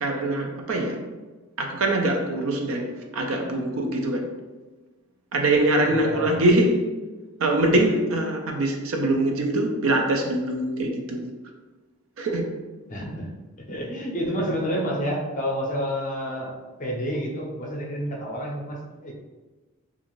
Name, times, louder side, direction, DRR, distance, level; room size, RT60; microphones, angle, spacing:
voice 1, 0.0-1.0 1.6-4.3 5.3-6.9 7.4-11.3 12.2-12.4, right 1 dB, 70° right, 3 dB, 0.4 m, -23 dB
voice 2, 5.9-6.4 12.9-13.3 13.7-16.5 16.8-19.1, equal, 40° left, -1 dB, 0.5 m, -29 dB
2.5 x 2.4 x 3.0 m, 1.2 s
head